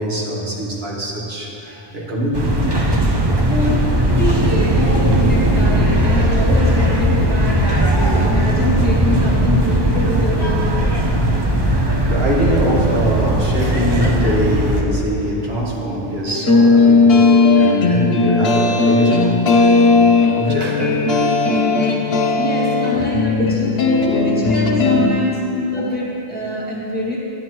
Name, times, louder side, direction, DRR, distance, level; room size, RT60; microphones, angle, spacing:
voice 1, 0.0-2.6 3.7-3.8 4.1-5.5 8.0-8.2 12.1-17.3 17.5-21.3 23.4-23.5 24.5-24.6, right 1 dB, 75° right, -4 dB, 1.6 m, -23 dB
sound 1, 2.3-14.8, right 1 dB, 25° right, 0.9 m, -17 dB
voice 2, 3.5-3.8 4.2-10.9 22.3-27.2, left 1 dB, 10° left, -6 dB, 1.7 m, -24 dB
sound 2, 16.3-25.1, left 3 dB, 70° left, 1.0 m, -15 dB
11.5 x 10.0 x 3.0 m, 2.9 s
omnidirectional pair, 1.0 m